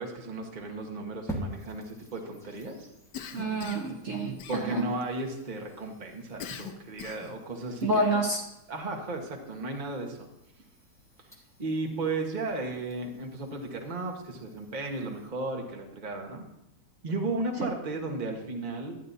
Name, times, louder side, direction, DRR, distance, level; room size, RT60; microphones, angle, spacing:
voice 1, 0.0-2.9 4.5-8.2 8.7-10.3 11.6-16.4 17.0-19.0, right 2 dB, 30° right, 2 dB, 1.2 m, -34 dB
sound 1, 1.3-15.3, equal, ahead, 1.1 m, -48 dB
Cough, 3.1-4.0 4.4-5.0 6.4-7.4, left 8 dB, 80° left, 1.3 m, -41 dB
voice 2, 3.3-4.8 7.8-8.4 17.6-17.7, right 2 dB, 55° right, 0 dB, 1.2 m, -28 dB
12.0 x 9.4 x 2.7 m, 0.88 s
omnidirectional pair, 1.8 m